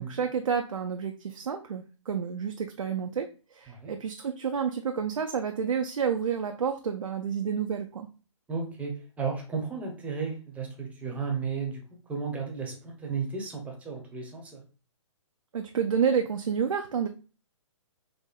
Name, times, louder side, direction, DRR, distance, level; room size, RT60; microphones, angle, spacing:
voice 1, 0.0-8.1 15.5-17.1, right 7 dB, 90° right, 5 dB, 0.4 m, -29 dB
voice 2, 8.5-11.8 12.1-14.6, right 5 dB, 10° right, 1 dB, 0.7 m, -34 dB
4.1 x 2.5 x 2.2 m, 0.35 s
hypercardioid pair, 135°, 16 cm